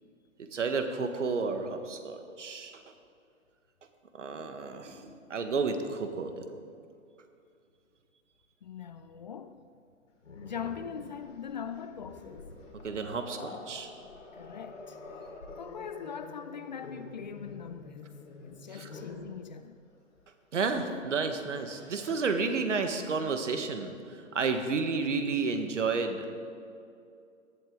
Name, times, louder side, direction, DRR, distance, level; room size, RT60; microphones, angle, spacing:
voice 1, 0.4-2.8 4.1-6.5 12.8-13.9 18.7-18.9 20.5-26.3, right 4 dB, 65° right, 1.6 m, -31 dB
voice 2, 8.6-9.7 10.4-12.5 14.3-15.0 15.6-18.1 18.4-19.8, left 7 dB, 35° left, 0.4 m, -41 dB
Growling, 10.2-19.3 20.6-20.8 21.2-22.4, left 3 dB, 70° left, 3.0 m, -48 dB
18.5 x 12.0 x 3.8 m
figure-of-eight pair, 130°, 39 cm